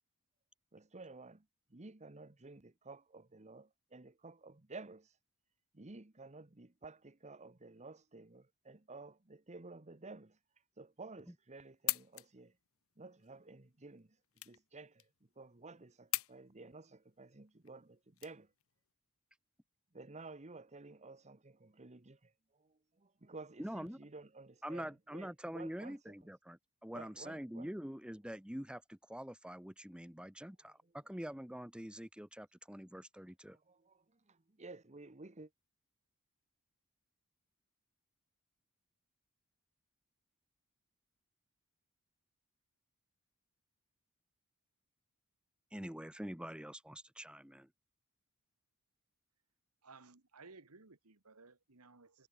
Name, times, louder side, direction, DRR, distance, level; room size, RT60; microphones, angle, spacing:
voice 1, 0.7-5.2 5.7-10.4 10.8-12.5 13.0-14.2 14.4-15.1 15.4-18.5 19.9-26.1 26.9-27.7 30.8-30.9 33.5-35.5, right 3 dB, 30° right, 1.2 m, -53 dB
sound 1, 11.7-18.9, left 18 dB, 65° left, 1.2 m, -43 dB
voice 2, 23.6-24.0 24.6-33.6 45.7-47.7, equal, 5° right, 1.3 m, -45 dB
voice 3, 49.8-52.3, right 3 dB, 90° right, 1.9 m, -58 dB
head